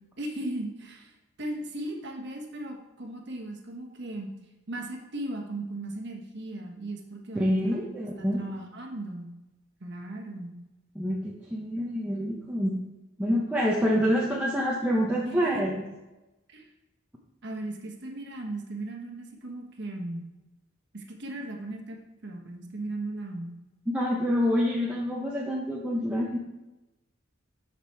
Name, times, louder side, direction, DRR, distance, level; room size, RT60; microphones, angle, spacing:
voice 1, 0.2-4.3 4.7-7.8 8.2-9.3 9.8-10.5 15.0-15.7 16.5-16.7 17.4-20.3 20.9-23.5, right 1 dB, 55° right, 1 dB, 1.3 m, -37 dB
voice 2, 7.3-8.4 11.0-12.7 13.2-15.8 23.9-26.4, equal, 5° right, -4 dB, 0.8 m, -27 dB
7.4 x 5.9 x 4.7 m, 1.0 s
head